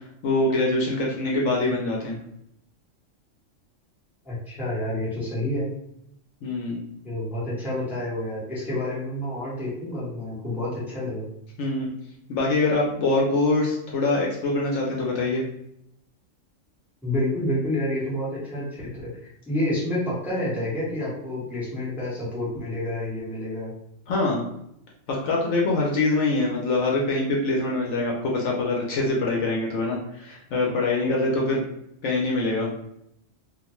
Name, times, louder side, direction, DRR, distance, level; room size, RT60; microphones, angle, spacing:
voice 1, 0.2-2.2 6.4-6.8 11.6-11.9 12.3-15.4 24.1-24.4 25.1-31.6 32.0-32.7, left 2 dB, 70° left, -2 dB, 0.9 m, -24 dB
voice 2, 4.2-5.7 7.0-11.3 17.0-19.1 19.4-23.7, left 1 dB, ahead, -9 dB, 0.9 m, -29 dB
2.5 x 2.1 x 2.9 m, 0.76 s
omnidirectional pair, 1.3 m